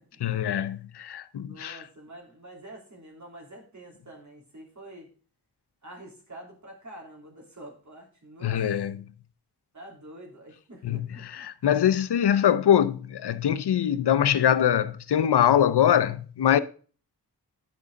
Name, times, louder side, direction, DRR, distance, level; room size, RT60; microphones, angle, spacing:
voice 1, 0.2-1.8 8.4-9.0 10.8-16.6, left 10 dB, 80° left, 0.7 m, -23 dB
voice 2, 1.4-5.1 5.8-8.6 9.7-11.5, right 1 dB, 45° right, 3.1 m, -47 dB
10.5 x 5.5 x 3.7 m
wide cardioid pair, 70°, 40 cm